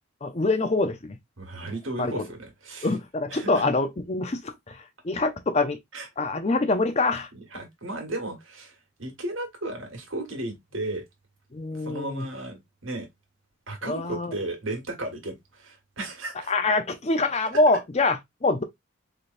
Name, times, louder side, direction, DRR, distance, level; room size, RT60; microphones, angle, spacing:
voice 1, 0.2-1.2 2.0-2.3 2.8-5.8 6.2-7.3 11.5-12.3 13.8-14.3 16.5-18.6, left 2 dB, 30° left, 0.5 m, -25 dB
voice 2, 1.4-2.9 3.3-3.6 5.9-6.1 7.3-11.0 11.7-13.1 13.7-16.5, right 2 dB, 75° right, 1.6 m, -35 dB
4.0 x 3.3 x 2.5 m
head